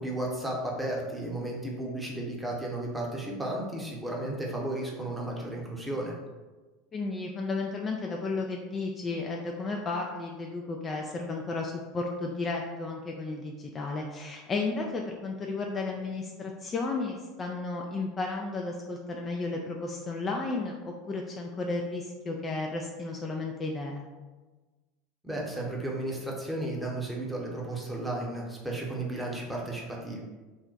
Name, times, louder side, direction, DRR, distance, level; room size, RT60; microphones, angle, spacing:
voice 1, 0.0-6.1 25.2-30.2, right 1 dB, 5° right, -3 dB, 0.8 m, -34 dB
voice 2, 6.9-24.0, left 3 dB, 30° left, 0 dB, 0.3 m, -33 dB
2.4 x 2.1 x 3.9 m, 1.2 s
hypercardioid pair, 80°, 0 cm